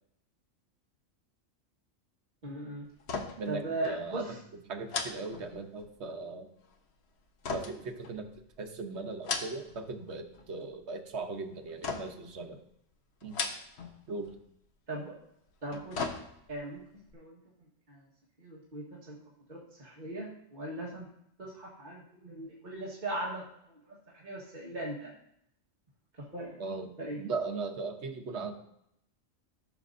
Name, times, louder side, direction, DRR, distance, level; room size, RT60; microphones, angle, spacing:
voice 1, 2.4-2.9 3.4-4.4 14.9-15.1 15.6-16.0 16.5-16.8 17.1-17.4 17.9-18.1 18.4-19.2 19.5-21.1 21.4-25.1 26.3-26.6 27.0-27.2, right 1 dB, 35° right, -6 dB, 1.5 m, -39 dB
sound 1, 3.0-3.6 3.8-4.0 4.9-6.0 7.4-8.6 9.1-9.9 10.2-10.7 11.8-12.3 13.2-14.0 14.3-14.4 15.5-16.7 17.1-17.2, left 4 dB, 60° left, 1.1 m, -37 dB
voice 2, 3.4-4.2 4.7-6.5 7.5-8.3 8.6-12.6 13.2-13.4 14.1-14.3 26.6-28.5, right 3 dB, 60° right, 5 dB, 1.1 m, -38 dB
13.5 x 6.4 x 2.6 m, 0.75 s
omnidirectional pair, 1.3 m